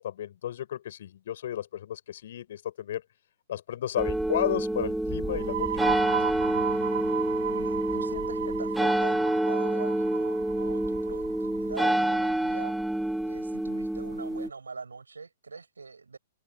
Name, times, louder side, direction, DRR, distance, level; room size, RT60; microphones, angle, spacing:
voice 1, 0.0-3.0 3.5-6.0, left 11 dB, 50° left, 6.8 m, -33 dB
sound 1, 4.0-14.5, right 1 dB, ahead, 1.6 m, -28 dB
sound 2, 5.2-12.7, right 12 dB, 50° right, 1.2 m, -36 dB
voice 2, 7.5-12.8 13.2-16.2, right 4 dB, 75° right, 6.5 m, -42 dB
figure-of-eight pair, 110°, 0 cm